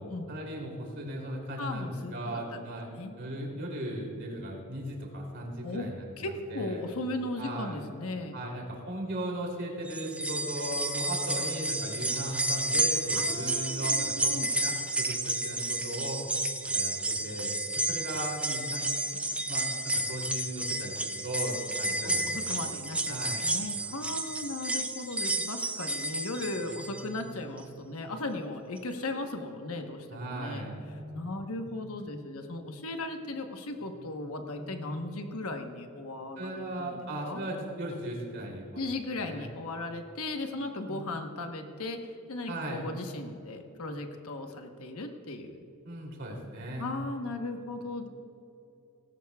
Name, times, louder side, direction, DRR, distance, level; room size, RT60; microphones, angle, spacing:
voice 1, 0.3-2.9 3.2-6.8 7.4-7.8 8.3-16.2 16.7-19.2 19.5-22.6 23.1-23.4 30.1-30.8 36.4-38.8 39.2-39.5 40.9-41.0 42.5-42.9 45.8-47.0, right 1 dB, 55° right, -1 dB, 3.1 m, -37 dB
voice 2, 1.6-2.6 2.9-3.2 5.6-5.9 6.2-8.4 13.2-14.5 22.0-30.7 31.1-37.4 38.8-45.6 46.8-48.1, left 2 dB, 75° left, 5 dB, 1.1 m, -37 dB
sound 1, 9.9-27.2 27.6-27.7 28.8-28.9, right 2 dB, 5° right, 0.5 m, -31 dB
sound 2, 26.4-28.3 30.1-32.0 33.8-35.7, right 1 dB, 25° right, 1.7 m, -48 dB
17.5 x 17.5 x 2.3 m, 2.8 s
head